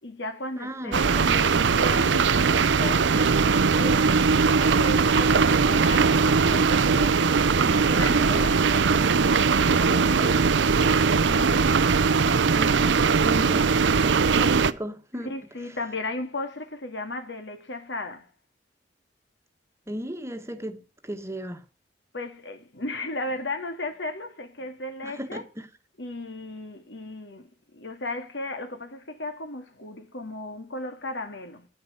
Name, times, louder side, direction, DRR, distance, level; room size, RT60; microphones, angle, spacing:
voice 1, 0.0-8.6 9.5-11.9 15.2-18.3 22.1-25.4 26.0-31.7, left 2 dB, 75° left, 2.1 m, -36 dB
voice 2, 0.6-1.0 8.3-8.5 9.9-10.3 12.4-13.7 14.0-15.3 19.9-21.6 25.0-25.7, equal, 15° right, 1.3 m, -36 dB
sound 1, 0.9-14.7, right 5 dB, 85° right, 0.6 m, -20 dB
9.6 x 9.2 x 6.3 m
head